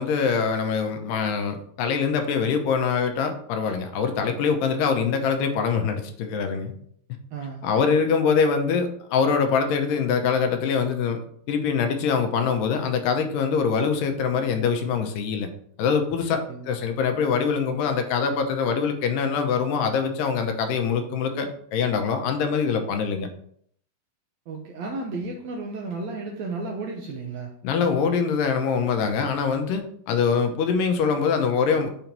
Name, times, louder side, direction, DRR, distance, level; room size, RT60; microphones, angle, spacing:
voice 1, 0.0-6.7 7.6-11.2 11.5-15.5 15.8-23.3 27.6-31.9, left 6 dB, 80° left, 6 dB, 2.4 m, -24 dB
voice 2, 7.3-7.7 16.5-16.7 24.5-27.5, right 3 dB, 75° right, 0 dB, 1.7 m, -33 dB
6.8 x 3.0 x 5.2 m, 0.65 s
omnidirectional pair, 3.8 m